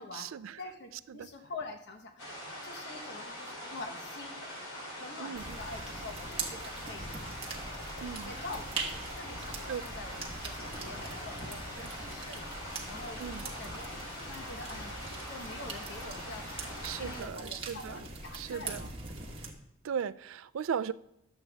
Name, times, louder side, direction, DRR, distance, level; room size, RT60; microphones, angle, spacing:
voice 1, 0.0-0.6 1.1-1.3 5.2-5.5 8.0-8.3 9.7-9.8 13.2-13.5 16.8-18.0 18.3-18.8 19.8-20.9, right 7 dB, 75° right, 16 dB, 0.4 m, -37 dB
voice 2, 0.6-2.3 2.6-4.4 4.9-7.1 8.2-13.9 14.2-15.0 15.3-16.6 16.9-18.9, left 2 dB, 55° left, 4 dB, 1.0 m, -46 dB
sound 1, 2.2-17.2, left 1 dB, 80° left, 3.1 m, -43 dB
sound 2, 5.3-19.5, right 3 dB, 30° right, 1.4 m, -42 dB
11.5 x 8.0 x 3.5 m, 0.83 s
head